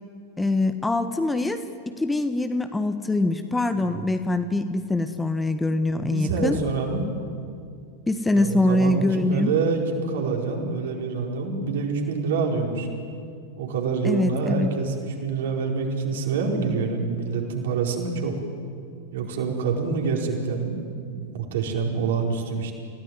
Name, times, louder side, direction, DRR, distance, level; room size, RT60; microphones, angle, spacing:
voice 1, 0.4-6.6 8.1-9.5 14.0-14.7, left 2 dB, 10° left, 9 dB, 1.3 m, -24 dB
voice 2, 6.0-7.0 8.3-12.9 13.6-18.4 19.1-22.7, right 4 dB, 60° right, 1 dB, 4.8 m, -26 dB
30.0 x 17.0 x 9.7 m, 2.4 s
figure-of-eight pair, 90°, 0 cm